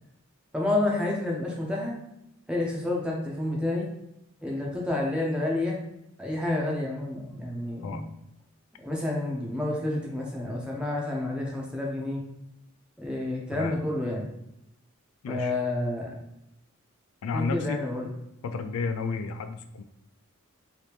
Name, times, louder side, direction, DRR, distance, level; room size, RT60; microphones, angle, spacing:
voice 1, 0.5-2.0 2.5-3.9 4.4-5.8 6.2-8.0 8.8-12.2 13.0-14.3 15.3-16.1 17.3-18.1, left 2 dB, 5° right, -2 dB, 0.6 m, -29 dB
voice 2, 17.2-17.8 18.4-19.8, left 4 dB, 80° left, 9 dB, 0.3 m, -32 dB
2.9 x 2.7 x 3.3 m, 0.83 s
head